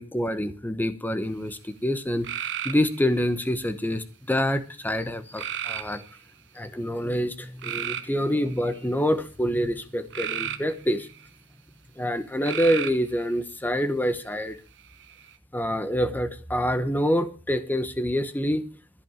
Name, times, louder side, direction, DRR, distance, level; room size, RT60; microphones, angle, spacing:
voice 1, 0.0-6.0 6.5-11.1 12.0-14.6 15.5-18.6, equal, 10° left, 11 dB, 0.9 m, -26 dB
sound 1, 2.2-3.2 5.4-6.2 7.6-8.9 10.1-11.3 12.4-13.1 14.8-15.3, right 10 dB, 55° right, 1.3 m, -33 dB
14.0 x 5.2 x 8.9 m, 0.36 s
head